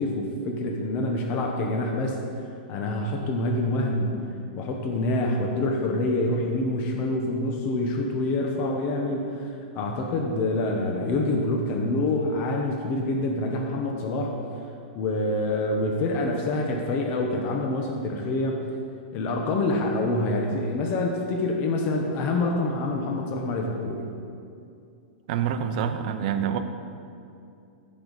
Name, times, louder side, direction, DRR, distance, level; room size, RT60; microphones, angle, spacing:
voice 1, 0.0-2.2 2.7-4.2 4.6-9.5 9.7-14.3 14.9-18.6 19.1-24.0, left 2 dB, 35° left, 1 dB, 1.0 m, -26 dB
voice 2, 25.3-26.6, right 8 dB, 50° right, 7 dB, 0.7 m, -26 dB
14.5 x 5.4 x 4.1 m, 2.5 s
supercardioid pair, 150°, 5 cm